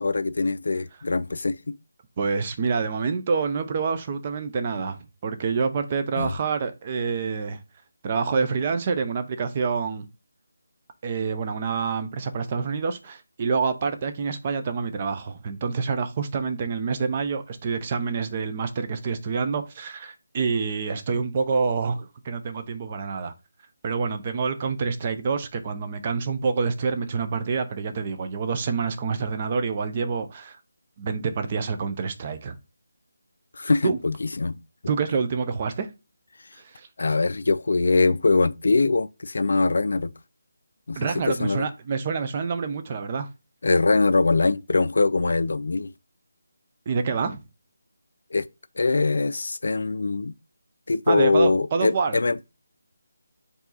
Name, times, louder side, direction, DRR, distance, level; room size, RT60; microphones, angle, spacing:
voice 1, 0.0-1.8 6.2-6.3 33.6-34.6 37.0-40.1 40.9-41.7 43.6-45.9 48.3-48.5 48.8-50.3 50.9-52.4, left 3 dB, 65° left, 0.4 m, -22 dB
voice 2, 2.2-7.6 8.0-10.0 11.0-23.3 23.8-30.6 31.0-32.6 33.8-34.0 34.9-35.9 36.6-36.9 41.0-43.3 46.9-47.4 51.1-52.2, right 5 dB, 25° right, 0.5 m, -27 dB
4.7 x 2.7 x 3.9 m
figure-of-eight pair, 170°, 0 cm